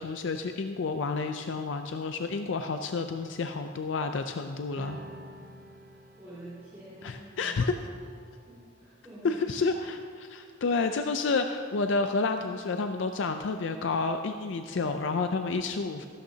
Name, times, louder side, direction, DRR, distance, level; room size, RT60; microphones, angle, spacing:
voice 1, 0.0-5.0 7.0-7.7 9.2-16.1, left 4 dB, 65° left, 7 dB, 0.4 m, -30 dB
sound 1, 4.7-11.5, right 1 dB, 45° right, 0.9 m, -51 dB
voice 2, 6.2-7.9 8.5-9.8, right 1 dB, 15° right, -10 dB, 2.8 m, -47 dB
14.0 x 12.5 x 2.8 m, 2.2 s
head